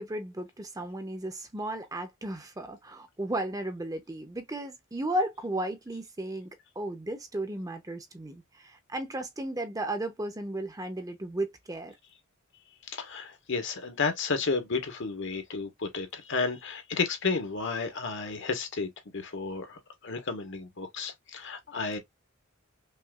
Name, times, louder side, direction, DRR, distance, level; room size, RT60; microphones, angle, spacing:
voice 1, 0.0-6.5 6.8-11.9, right 1 dB, 15° right, 0.7 m, -34 dB
voice 2, 12.9-22.0, left 4 dB, 60° left, 1.2 m, -32 dB
5.5 x 2.5 x 2.4 m
head